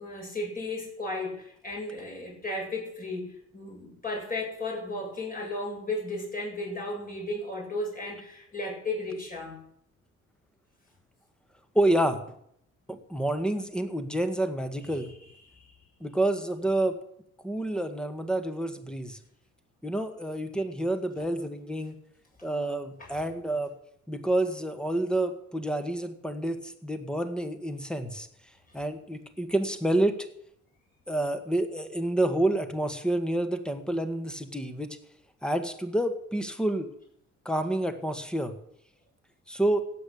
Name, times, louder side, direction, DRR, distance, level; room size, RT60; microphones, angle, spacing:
voice 1, 0.0-9.6 14.8-14.9 15.5-15.7 23.0-23.3, left 2 dB, 30° left, -1 dB, 8.0 m, -35 dB
voice 2, 11.8-12.2 12.9-15.1 16.0-17.0 17.4-19.2 19.8-22.0 22.4-23.7 24.1-28.3 28.7-30.2 31.1-35.0 35.4-36.9 37.5-38.5 39.5-39.8, right 1 dB, 5° left, 8 dB, 2.0 m, -28 dB
16.5 x 8.5 x 8.6 m, 0.71 s
cardioid pair, 90°, 30 cm